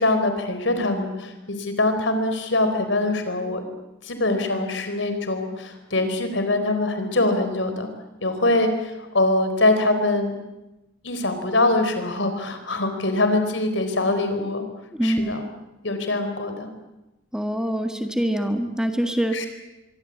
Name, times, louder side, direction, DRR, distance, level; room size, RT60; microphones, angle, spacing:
voice 1, 0.0-3.7 4.0-7.9 8.2-10.4 11.0-14.6 15.0-15.4 15.8-16.7 19.3-19.5, left 2 dB, 70° left, 8 dB, 4.4 m, -23 dB
voice 2, 14.9-15.3 17.3-19.4, equal, 5° right, 5 dB, 1.7 m, -24 dB
24.5 x 24.0 x 8.5 m, 0.98 s
head